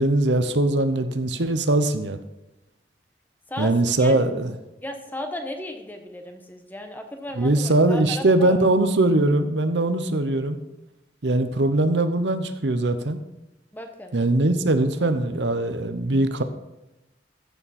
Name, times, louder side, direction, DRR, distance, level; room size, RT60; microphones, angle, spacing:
voice 1, 0.0-2.2 3.6-4.5 7.4-10.6 11.2-13.2 14.1-16.4, right 2 dB, 80° right, 9 dB, 0.9 m, -21 dB
voice 2, 4.8-8.6 13.7-14.2, left 1 dB, 10° left, 5 dB, 1.1 m, -35 dB
14.5 x 7.2 x 4.3 m, 0.96 s
head